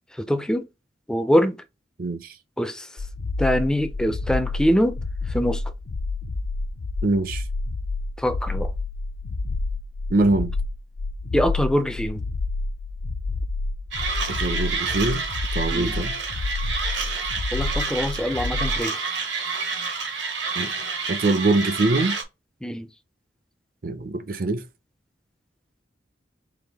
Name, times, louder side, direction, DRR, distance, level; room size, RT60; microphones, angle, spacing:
voice 1, 0.2-0.7 1.1-1.6 2.6-2.9 3.4-5.0 5.3-5.6 8.2-8.7 11.3-12.2 15.7-15.9 17.5-19.1 22.6-22.9, equal, 5° left, 0.4 m, -23 dB
voice 2, 2.0-2.3 7.0-7.4 10.1-10.5 14.3-15.2 15.5-16.1 20.6-20.7 21.1-22.2 23.8-24.6, right 2 dB, 50° right, 0.5 m, -23 dB
sound 1, 3.0-18.8, left 3 dB, 70° left, 0.5 m, -29 dB
Mechanisms, 13.9-22.2, right 4 dB, 80° right, 1.2 m, -29 dB
4.8 x 2.5 x 3.5 m
head